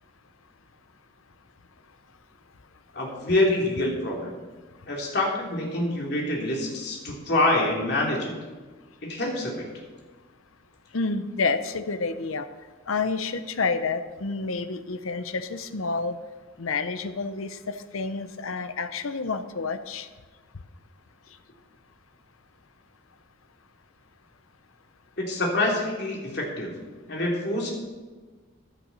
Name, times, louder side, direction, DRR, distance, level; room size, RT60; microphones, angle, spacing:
voice 1, 2.9-4.3 4.9-8.3 9.0-9.7 25.2-26.7 27.1-27.7, left 1 dB, 50° left, -1 dB, 2.8 m, -26 dB
voice 2, 10.9-12.4 12.9-16.2 16.6-20.1, left 4 dB, 85° left, 11 dB, 0.8 m, -29 dB
15.0 x 10.0 x 4.1 m, 1.3 s
head